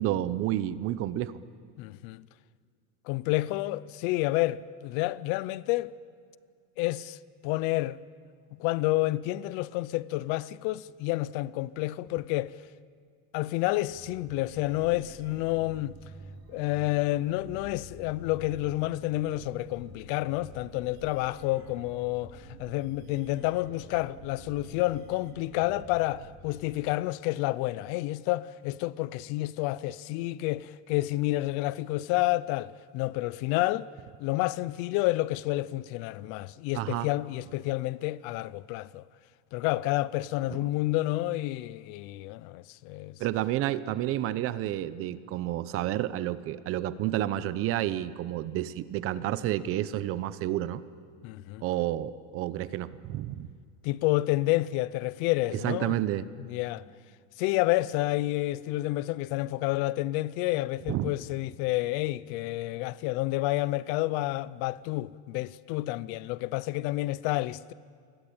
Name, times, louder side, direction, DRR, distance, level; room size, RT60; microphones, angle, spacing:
voice 1, 0.0-1.3 36.7-37.1 40.5-40.6 43.2-50.8 51.6-53.5 55.5-56.3 60.9-61.1, right 13 dB, 35° right, 0.8 m, -30 dB
voice 2, 1.8-2.2 3.1-5.9 6.8-7.2 7.4-8.0 8.6-12.5 13.3-16.0 16.5-33.9 34.2-39.0 39.5-43.2 51.2-51.6 53.8-55.9 56.5-56.8 57.4-67.7, left 18 dB, 50° left, 0.6 m, -29 dB
sound 1, 13.9-26.4, right 3 dB, 60° right, 4.1 m, -49 dB
28.5 x 22.5 x 8.7 m
cardioid pair, 175°, 38 cm